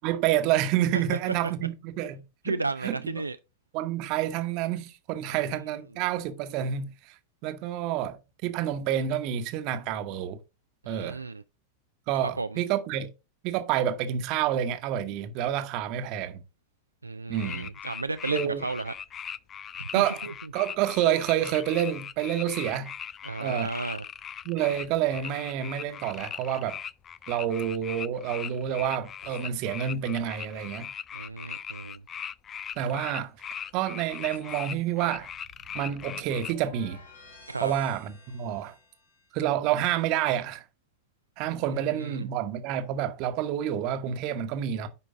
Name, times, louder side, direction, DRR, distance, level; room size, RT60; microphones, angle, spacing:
voice 1, 0.0-2.6 2.8-3.2 3.7-7.1 7.4-10.4 10.9-11.2 12.1-13.1 13.4-16.4 17.3-17.7 18.3-18.7 19.9-20.2 20.5-22.9 23.4-23.7 24.4-26.8 27.3-30.9 32.8-33.3 33.7-35.3 35.7-37.0 37.6-38.8 39.3-40.6 41.4-44.9, right 10 dB, 40° right, 1.1 m, -28 dB
voice 2, 0.9-1.3 2.4-3.4 5.3-5.4 10.8-11.4 12.4-12.6 17.0-18.9 19.8-19.9 20.2-20.3 23.2-24.0 31.1-32.0 37.5-37.7 41.9-42.2, right 3 dB, 80° right, 0.4 m, -33 dB
sound 1, 17.3-36.5, left 8 dB, 25° left, 0.4 m, -39 dB
sound 2, 24.7-25.2 27.0-29.4 32.9-39.3, left 3 dB, 70° left, 2.6 m, -54 dB
9.9 x 5.1 x 3.7 m
figure-of-eight pair, 90°, 0 cm